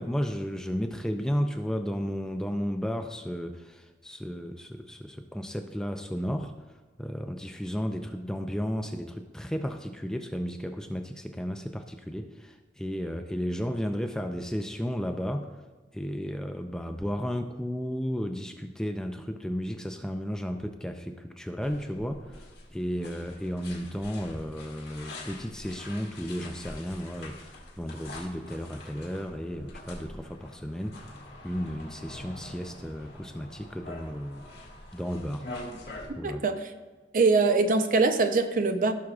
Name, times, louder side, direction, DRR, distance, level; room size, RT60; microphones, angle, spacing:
voice 1, 0.0-6.5 7.0-15.5 15.9-31.1 31.4-34.5 34.9-35.5 36.2-36.4, equal, 5° left, 5 dB, 0.3 m, -33 dB
Walking on snow and ice, 21.6-36.1, left 2 dB, 65° left, 1.9 m, -45 dB
voice 2, 36.2-36.7 37.1-38.9, right 3 dB, 50° right, 8 dB, 0.6 m, -23 dB
16.0 x 6.1 x 2.4 m, 1.3 s
head